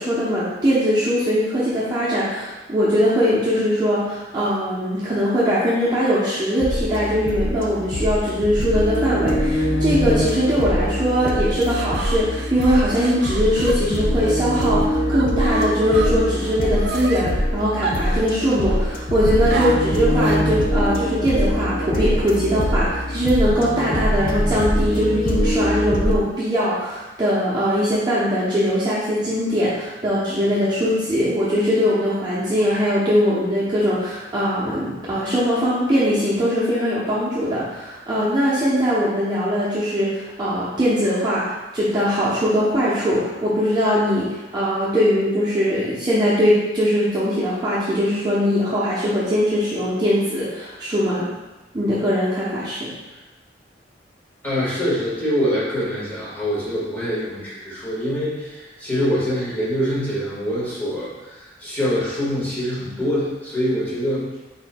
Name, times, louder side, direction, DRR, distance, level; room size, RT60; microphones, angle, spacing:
voice 1, 0.0-41.4 41.7-44.3 44.5-51.3 51.7-52.9, equal, 25° right, -9 dB, 0.7 m, -21 dB
sound 1, 6.6-26.2, equal, 50° left, 0.5 m, -23 dB
sound 2, 11.5-14.7 15.1-17.2 17.8-18.8 19.5-20.5, right 3 dB, 65° right, 0.4 m, -31 dB
voice 2, 54.4-64.4, equal, 10° left, -9 dB, 1.5 m, -24 dB
4.4 x 4.2 x 2.2 m, 1.1 s
head